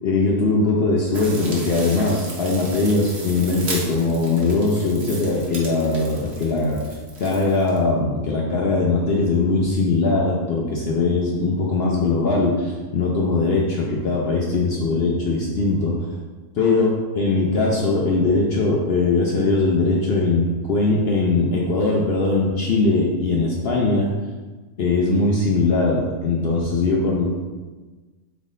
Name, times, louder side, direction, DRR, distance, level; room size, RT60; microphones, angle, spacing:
voice 1, 0.0-6.8 7.2-16.0 16.6-16.9 17.1-24.1 24.8-27.3, left 3 dB, 60° left, -3 dB, 0.6 m, -20 dB
sound 1, 1.1-7.8, right 2 dB, 50° right, 1.1 m, -36 dB
3.7 x 3.6 x 3.8 m, 1.3 s
omnidirectional pair, 1.6 m